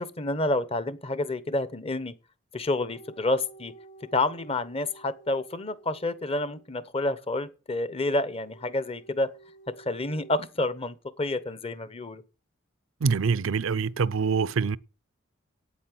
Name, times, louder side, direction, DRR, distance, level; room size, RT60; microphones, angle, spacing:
voice 1, 0.0-2.1 2.5-3.7 4.1-9.3 9.9-12.2, left 2 dB, 30° left, 0.9 m, -29 dB
sound 1, 2.9-6.9 8.2-10.4, right 3 dB, 65° left, 3.3 m, -52 dB
voice 2, 13.0-14.8, right 5 dB, 75° right, 0.5 m, -25 dB
9.0 x 8.5 x 7.7 m
head